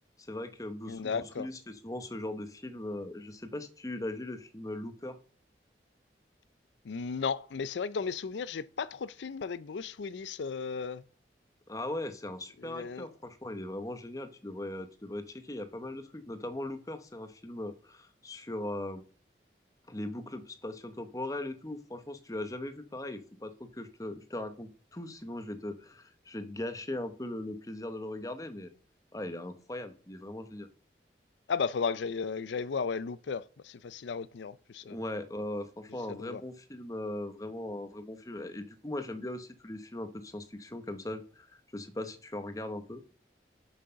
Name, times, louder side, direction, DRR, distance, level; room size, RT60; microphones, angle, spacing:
voice 1, 0.2-5.2 11.7-19.0 19.9-28.7 29.1-30.7 34.8-43.0, left 1 dB, 20° left, 0.9 m, -39 dB
voice 2, 0.9-1.5 6.8-11.0 12.6-13.1 31.5-35.0 36.1-36.4, left 5 dB, 85° left, 0.5 m, -35 dB
7.5 x 6.3 x 5.7 m
head